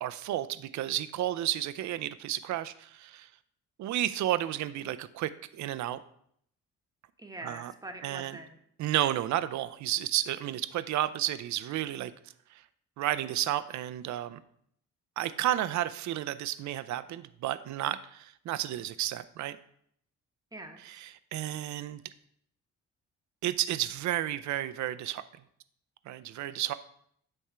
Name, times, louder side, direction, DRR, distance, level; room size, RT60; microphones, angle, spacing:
voice 1, 0.0-3.3 3.8-6.0 7.4-7.7 8.0-8.4 8.8-12.1 12.5-12.6 13.0-14.4 15.2-19.6 20.8-22.0 23.4-25.2 26.1-26.7, right 13 dB, 70° right, 13 dB, 0.5 m, -32 dB
voice 2, 7.2-8.6 20.5-21.0, right 2 dB, 10° right, 4 dB, 1.2 m, -44 dB
8.6 x 3.6 x 5.6 m, 0.68 s
cardioid pair, 90°, 30 cm